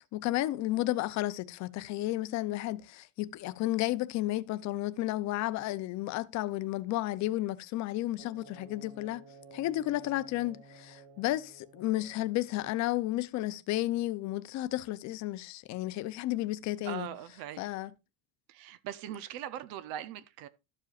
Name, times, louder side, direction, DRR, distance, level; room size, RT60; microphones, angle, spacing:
voice 1, 0.1-9.2 9.5-17.1 17.6-17.9, left 16 dB, 45° left, 0.6 m, -32 dB
sound 1, 8.2-12.9, right 3 dB, 35° right, 3.6 m, -54 dB
voice 2, 16.8-17.6 18.5-20.5, right 11 dB, 65° right, 0.7 m, -40 dB
13.0 x 7.5 x 2.4 m
cardioid pair, 165°, 38 cm